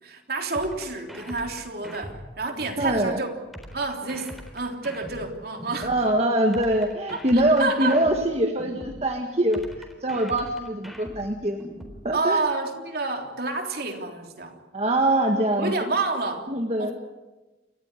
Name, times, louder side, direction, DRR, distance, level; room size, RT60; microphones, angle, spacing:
voice 1, 0.0-3.3 3.7-5.9 7.1-8.0 12.1-14.6 15.6-16.5 16.8-16.9, right 3 dB, 55° right, 3 dB, 3.4 m, -29 dB
sound 1, 0.5-3.0 3.5-6.0 6.5-9.0 9.5-12.0, equal, ahead, 4.0 m, -41 dB
voice 2, 2.8-3.2 5.8-9.6 10.0-11.6 12.0-12.4 14.7-15.7 16.5-16.9, right 1 dB, 35° right, 3 dB, 1.7 m, -23 dB
29.0 x 15.0 x 9.8 m, 1.1 s
head